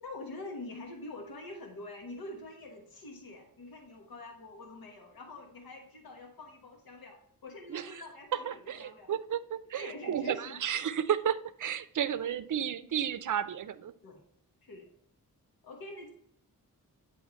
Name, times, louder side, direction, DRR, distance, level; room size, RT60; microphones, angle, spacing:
voice 1, 0.0-9.1 9.8-10.6 14.0-14.2 14.6-14.9 15.6-16.1, left 2 dB, 85° left, 2 dB, 1.2 m, -45 dB
voice 2, 7.7-8.0 8.3-13.9, right 9 dB, 60° right, 13 dB, 0.5 m, -33 dB
9.4 x 3.5 x 4.3 m, 0.70 s
wide cardioid pair, 120°, 35 cm